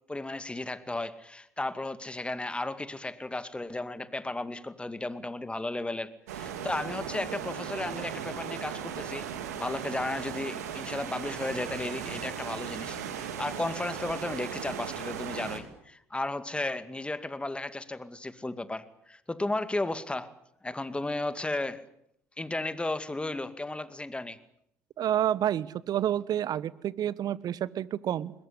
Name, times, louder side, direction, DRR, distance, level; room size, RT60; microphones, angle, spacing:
voice 1, 0.1-9.3 9.5-20.3 20.6-21.8 22.4-24.4, left 2 dB, 10° left, 13 dB, 2.3 m, -34 dB
sound 1, 6.3-15.6, right 8 dB, 80° right, 3.1 m, -37 dB
voice 2, 25.0-28.3, right 11 dB, 50° right, 20 dB, 1.2 m, -29 dB
21.5 x 21.5 x 9.9 m, 0.73 s
hypercardioid pair, 60°, 8 cm